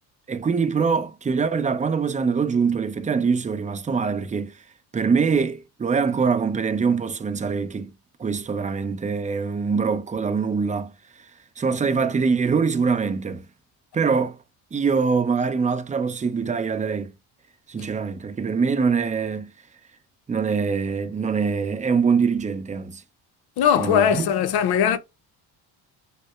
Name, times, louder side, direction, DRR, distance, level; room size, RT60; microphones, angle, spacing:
voice 1, 0.3-4.6 4.9-7.9 8.2-10.9 11.6-13.4 13.9-14.4 14.7-17.1 17.7-19.5 20.3-23.0 23.8-24.3, right 5 dB, 15° right, 0.5 m, -23 dB
voice 2, 23.6-25.0, left 8 dB, 55° left, 0.7 m, -20 dB
6.1 x 2.2 x 2.2 m
supercardioid pair, 75°, 47 cm